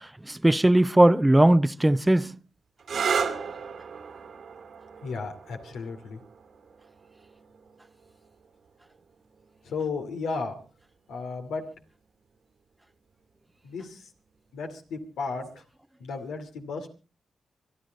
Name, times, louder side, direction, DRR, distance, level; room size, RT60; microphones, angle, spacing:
voice 1, 0.3-2.3, right 1 dB, 15° right, 0.7 m, -19 dB
sound 1, 2.8-10.2 11.2-11.8 15.3-15.6, right 6 dB, 70° right, 2.2 m, -35 dB
voice 2, 5.0-6.2 9.6-10.5 11.1-11.7 13.6-14.0 14.5-15.5 16.0-16.9, left 4 dB, 85° left, 2.4 m, -34 dB
25.0 x 11.0 x 3.9 m
cardioid pair, 55°, 0 cm